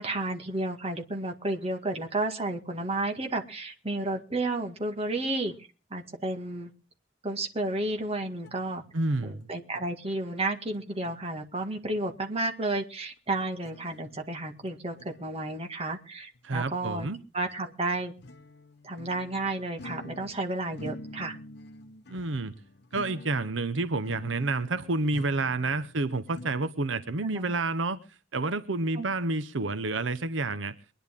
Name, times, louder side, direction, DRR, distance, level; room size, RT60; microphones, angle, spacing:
voice 1, 0.0-5.5 5.9-6.7 7.2-8.8 9.2-17.1 17.3-18.1 18.8-21.4 27.2-27.4 29.0-29.1, right 2 dB, 35° right, 4 dB, 2.0 m, -32 dB
sound 1, 8.4-8.6 9.4-9.5 9.7-9.9 10.7-10.8 11.0-11.2 13.4-14.2 14.6-15.3 16.3-16.4 17.1-17.2 17.9-20.5 20.7-26.6, left 1 dB, 60° left, 1.0 m, -46 dB
voice 2, 8.9-9.5 16.4-17.2 22.1-22.5 22.9-28.0 28.3-30.7, right 3 dB, 90° right, 13 dB, 0.9 m, -29 dB
23.5 x 10.0 x 3.7 m, 0.34 s
head